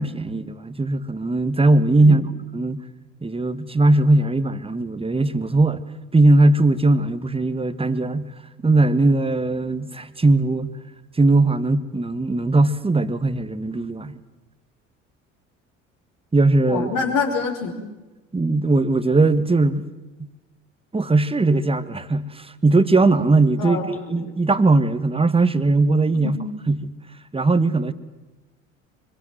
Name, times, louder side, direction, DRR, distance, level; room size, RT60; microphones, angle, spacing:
voice 1, 0.0-2.2 2.5-2.8 3.2-8.3 8.6-10.7 11.1-14.2 16.3-16.9 18.3-19.9 20.2-20.3 20.9-26.4 26.7-26.9 27.3-27.9, right 2 dB, 15° right, 1.7 m, -19 dB
voice 2, 2.0-2.3 16.7-17.7 23.6-24.4 26.1-26.3, left 5 dB, 60° left, 5.3 m, -26 dB
25.0 x 23.0 x 7.6 m
hypercardioid pair, 60°, 37 cm